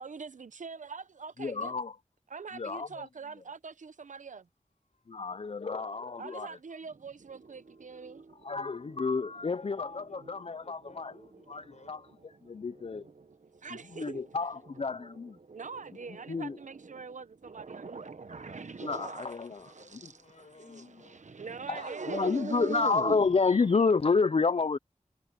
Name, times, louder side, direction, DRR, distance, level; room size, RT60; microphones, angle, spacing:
voice 1, 0.0-1.7 2.3-4.5 6.2-8.2 13.6-14.2 15.5-18.0 21.4-22.6, right 5 dB, 85° right, 0.7 m, -44 dB
voice 2, 1.4-2.0 2.5-3.1 5.1-6.6 8.4-11.1 11.5-12.0 12.4-12.9 13.9-15.0 16.3-16.6 18.8-19.7 21.7-24.8, left 4 dB, 50° left, 0.5 m, -29 dB
voice 3, 4.8-5.4 7.4-8.0 9.3-12.0 19.6-21.2, left 3 dB, 65° left, 6.3 m, -60 dB
sound 1, 6.9-24.0, right 4 dB, 70° right, 1.2 m, -45 dB
wide cardioid pair, 45°, 13 cm